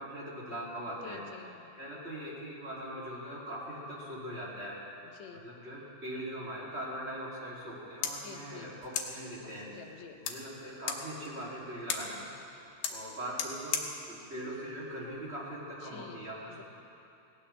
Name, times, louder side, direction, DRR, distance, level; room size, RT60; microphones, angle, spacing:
voice 1, 0.0-1.2 1.8-4.8 5.3-9.7 10.2-12.4 12.9-16.6, right 1 dB, 20° right, -7 dB, 2.7 m, -41 dB
voice 2, 1.0-1.7 5.1-5.4 8.2-8.8 9.4-10.2 15.8-16.2 16.5-16.6, left 7 dB, 90° left, 2 dB, 1.5 m, -49 dB
sound 1, 7.6-15.6, left 7 dB, 70° left, 2.3 m, -41 dB
19.0 x 17.5 x 3.4 m, 2.8 s
omnidirectional pair, 4.3 m